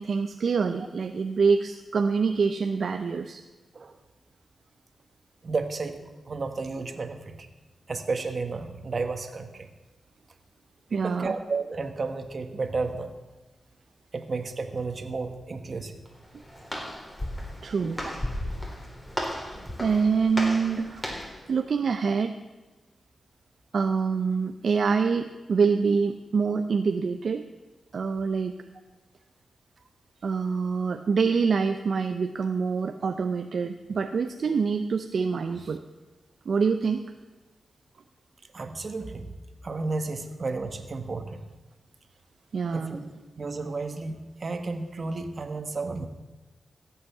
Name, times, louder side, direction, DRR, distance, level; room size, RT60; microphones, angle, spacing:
voice 1, 0.0-3.4 10.9-11.3 17.6-18.0 19.8-21.1 21.5-22.3 23.7-27.4 27.9-28.5 30.2-35.8 36.5-37.0 42.5-43.0, right 5 dB, 65° right, 7 dB, 0.6 m, -25 dB
voice 2, 5.4-6.0 6.2-7.5 7.9-9.7 10.9-13.2 14.1-16.0 18.0-18.1 38.5-39.3 39.6-41.5 42.7-43.0 43.4-46.1, right 3 dB, 50° right, 7 dB, 1.5 m, -32 dB
Walk footsteps, 16.1-21.4, left 1 dB, 20° left, 3.9 m, -35 dB
15.5 x 8.1 x 7.2 m, 1.2 s
cardioid pair, 65°, 0 cm